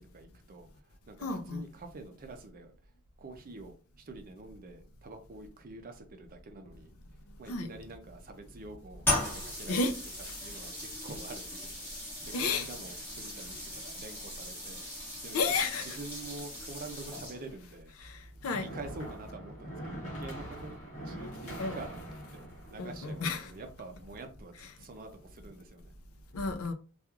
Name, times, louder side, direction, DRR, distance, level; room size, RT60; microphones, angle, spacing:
voice 1, 0.1-2.7 3.2-6.9 7.4-9.8 10.4-11.8 12.2-15.4 15.8-18.1 18.6-20.7 21.0-25.9, right 3 dB, 40° right, 0.5 m, -47 dB
voice 2, 1.2-1.6 7.5-7.7 9.7-10.0 10.3-10.4 12.3-12.7 15.3-16.0 18.0-18.7 21.6-21.8 22.8-23.5 26.3-26.7, left 3 dB, 65° left, 0.5 m, -32 dB
sound 1, 9.0-17.6, left 1 dB, 10° left, 1.2 m, -38 dB
sound 2, 18.0-24.1, right 1 dB, 35° left, 1.2 m, -44 dB
3.0 x 2.4 x 2.3 m
head